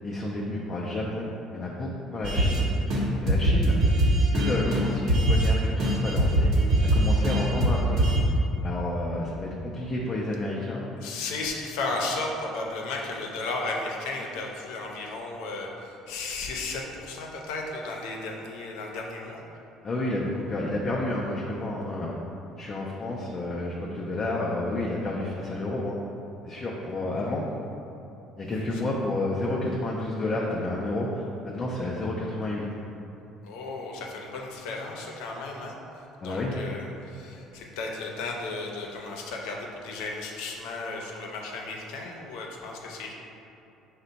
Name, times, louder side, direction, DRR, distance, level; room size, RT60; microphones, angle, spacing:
voice 1, 0.0-2.7 3.2-3.9 4.3-6.5 6.8-8.0 8.6-10.9 19.8-22.1 22.6-26.0 26.4-27.5 28.4-32.6 36.2-36.6, left 2 dB, 25° left, -4 dB, 0.4 m, -30 dB
sound 1, 2.2-2.6 2.9-3.0 3.3-5.5 5.8-8.2, right 1 dB, 55° right, 0.8 m, -22 dB
voice 2, 11.0-19.4 28.5-28.8 33.4-35.7 36.2-43.1, left 3 dB, 85° left, 0 dB, 0.6 m, -34 dB
5.4 x 2.1 x 3.9 m, 2.9 s
cardioid pair, 145°, 0 cm